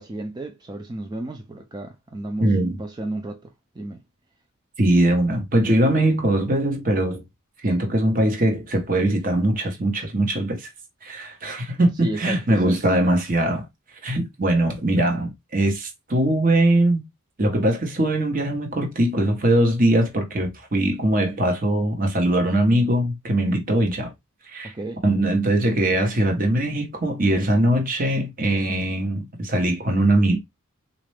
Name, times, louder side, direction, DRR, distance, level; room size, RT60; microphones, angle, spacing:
voice 1, 0.0-2.5 2.8-3.4 3.8-4.0 12.0-12.8 24.6-25.0, right 1 dB, 20° right, 0.4 m, -32 dB
voice 2, 2.4-2.8 4.8-7.2 7.6-10.7 11.0-13.6 14.0-17.0 17.4-24.1 24.5-24.7 25.0-30.4, right 1 dB, 40° right, 1.0 m, -21 dB
4.1 x 2.5 x 3.2 m
head